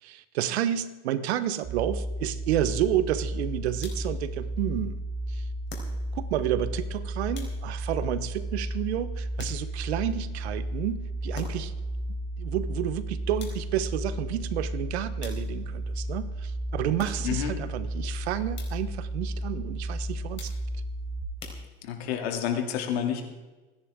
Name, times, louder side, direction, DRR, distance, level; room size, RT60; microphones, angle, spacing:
voice 1, 0.0-5.0 5.3-5.5 6.1-11.7 12.1-20.5, right 11 dB, 80° right, 14 dB, 1.1 m, -30 dB
sound 1, 1.6-21.2, right 1 dB, 10° right, 4.0 m, -33 dB
sound 2, 3.8-4.3 5.7-6.3 7.3-7.9 9.4-10.0 11.3-11.9 13.4-13.9 15.2-15.8 17.0-17.5 18.5-19.0 20.4-20.9 21.4-22.1, left 4 dB, 35° left, 3.9 m, -46 dB
voice 2, 21.8-23.2, left 9 dB, 80° left, 3 dB, 2.8 m, -29 dB
27.0 x 10.5 x 3.7 m, 1.2 s
supercardioid pair, 100°, 32 cm